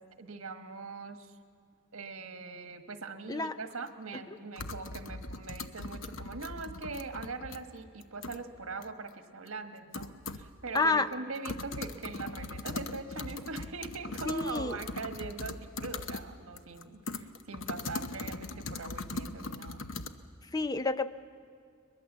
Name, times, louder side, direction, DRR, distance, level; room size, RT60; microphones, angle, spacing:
voice 1, 0.0-1.3 1.9-19.8, right 4 dB, 90° right, 7 dB, 1.4 m, -42 dB
sound 1, 3.7-3.8 4.6-7.6 8.0-8.4 8.8-8.9 9.5-9.6 9.9-10.5 10.8-10.9 11.1-16.3 16.6-20.1, left 3 dB, 65° left, 0.9 m, -40 dB
voice 2, 10.7-11.1 14.2-14.8 20.5-21.1, left 3 dB, 20° left, 12 dB, 0.5 m, -29 dB
22.0 x 21.5 x 7.4 m, 2.2 s
head